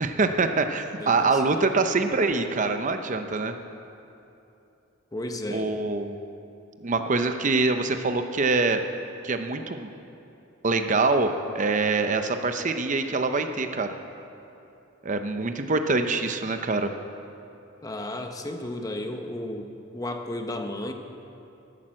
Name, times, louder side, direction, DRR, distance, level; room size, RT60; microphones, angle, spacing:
voice 1, 0.0-3.5 5.5-6.2 6.8-8.8 9.2-9.9 10.6-13.9 15.0-16.9, right 3 dB, 40° right, 7 dB, 0.7 m, -24 dB
voice 2, 1.0-1.4 5.1-5.7 17.8-20.9, left 1 dB, 20° left, 5 dB, 0.9 m, -33 dB
13.5 x 12.0 x 7.6 m, 2.8 s
head